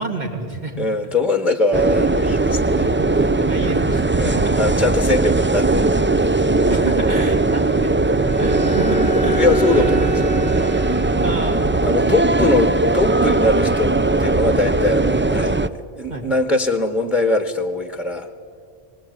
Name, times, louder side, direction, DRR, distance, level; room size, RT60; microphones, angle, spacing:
voice 1, 0.0-0.8 2.8-3.0 3.5-4.5 6.7-9.9 11.2-12.1 16.1-16.2, right 3 dB, 45° right, 2 dB, 3.1 m, -29 dB
voice 2, 0.8-2.9 3.1-3.6 4.2-6.6 8.7-10.8 11.8-13.9 14.2-18.3, left 2 dB, ahead, 8 dB, 1.2 m, -22 dB
sound 1, 1.7-15.7, right 2 dB, 20° right, 0.3 m, -19 dB
Bowed string instrument, 8.2-11.8, right 2 dB, 85° right, 2.9 m, -28 dB
23.5 x 19.0 x 9.2 m, 2.1 s
omnidirectional pair, 1.0 m